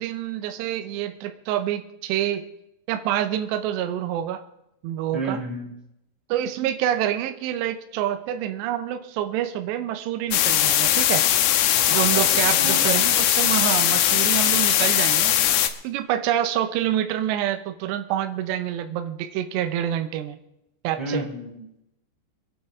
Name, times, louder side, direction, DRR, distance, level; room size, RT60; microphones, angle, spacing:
voice 1, 0.0-2.4 2.9-4.4 4.8-5.4 6.3-11.3 11.9-15.3 15.8-20.4 20.8-21.2, right 11 dB, 80° right, 8 dB, 2.9 m, -27 dB
voice 2, 5.1-5.7 11.7-12.8 21.0-21.8, right 2 dB, ahead, -5 dB, 4.7 m, -32 dB
sound 1, 10.3-15.7, left 12 dB, 75° left, 2.6 m, -20 dB
26.0 x 9.6 x 3.6 m, 0.84 s
omnidirectional pair, 5.1 m